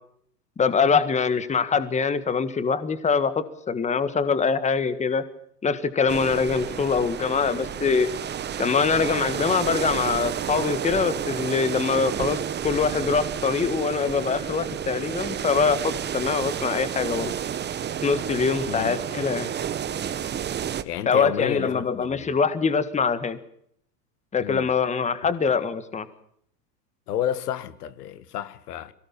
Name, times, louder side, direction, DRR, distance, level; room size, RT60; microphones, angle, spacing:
voice 1, 0.6-5.2 5.6-8.1 8.6-12.4 12.6-17.3 18.0-19.5 21.1-23.4 24.3-26.1, left 5 dB, 15° left, 1.7 m, -23 dB
sound 1, 6.1-20.8, right 9 dB, 20° right, 1.2 m, -31 dB
voice 2, 20.8-22.3 24.4-24.7 27.1-28.9, left 10 dB, 75° left, 1.9 m, -31 dB
23.0 x 18.0 x 7.3 m
hypercardioid pair, 115°, 47 cm